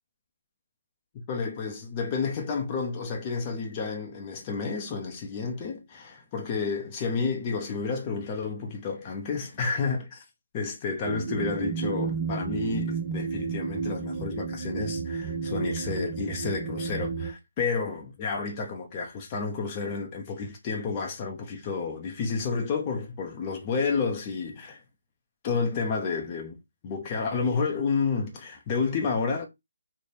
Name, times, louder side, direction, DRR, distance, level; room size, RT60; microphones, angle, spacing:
voice 1, 1.1-10.2 10.5-24.8 25.4-26.6 26.8-29.5, left 5 dB, 25° left, 0.7 m, -30 dB
sound 1, 11.0-17.3, right 5 dB, 30° right, 0.5 m, -31 dB
3.2 x 2.1 x 4.1 m
figure-of-eight pair, 155°, 0 cm